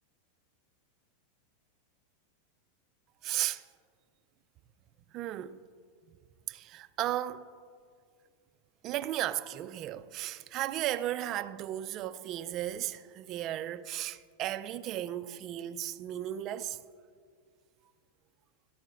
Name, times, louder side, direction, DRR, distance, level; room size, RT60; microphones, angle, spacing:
voice 1, 3.2-3.6 5.1-5.6 6.5-7.4 8.8-16.8, right 13 dB, 35° right, 0.4 m, -35 dB
18.0 x 13.0 x 2.5 m
supercardioid pair, 140°, 0 cm